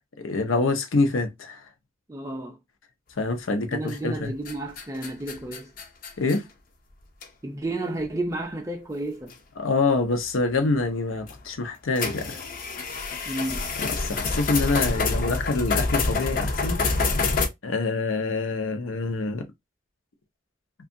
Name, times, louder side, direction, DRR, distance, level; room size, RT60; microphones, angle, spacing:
voice 1, 0.2-1.6 3.2-4.3 6.2-6.5 9.6-12.4 13.8-16.8 17.6-19.5, left 3 dB, 85° left, 0.6 m, -26 dB
voice 2, 2.1-2.6 3.5-5.7 7.4-9.4 13.3-13.7, right 2 dB, 15° right, 0.4 m, -32 dB
sound 1, 3.9-4.2 4.5-6.4 7.2-7.3 7.9-8.0 9.3-9.4 11.2-11.4 12.0-17.5, left 3 dB, 45° left, 0.4 m, -27 dB
2.7 x 2.3 x 2.5 m
head